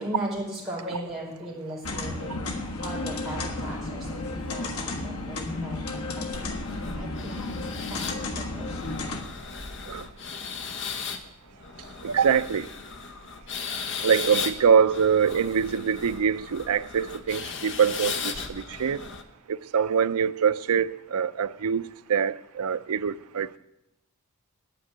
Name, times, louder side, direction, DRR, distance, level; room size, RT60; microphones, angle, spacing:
voice 1, 0.0-2.4 2.8-7.5 7.9-8.7, right 1 dB, ahead, 4.7 m, -37 dB
sound 1, 1.8-9.2, left 2 dB, 80° left, 1.5 m, -33 dB
sound 2, 6.3-19.2, left 5 dB, 55° left, 1.1 m, -36 dB
voice 2, 12.0-12.7 14.0-19.1 19.5-23.6, right 7 dB, 85° right, 0.5 m, -24 dB
9.4 x 9.2 x 9.7 m
head